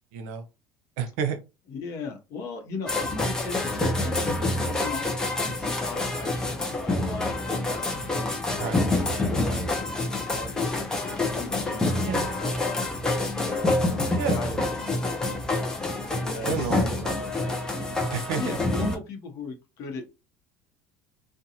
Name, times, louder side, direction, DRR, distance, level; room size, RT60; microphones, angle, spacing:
voice 1, 0.1-0.4 1.0-1.4 8.6-8.8 12.0-12.3 14.1-14.7 16.5-17.8 18.1-18.4, right 7 dB, 90° right, 7 dB, 0.7 m, -31 dB
voice 2, 1.7-5.0 5.3-8.0 8.5-16.9 18.4-20.0, left 4 dB, 40° left, 4 dB, 0.8 m, -38 dB
sound 1, 2.9-19.0, left 2 dB, 10° left, 0.4 m, -27 dB
2.5 x 2.2 x 2.8 m, 0.27 s
cardioid pair, 170°, 8 cm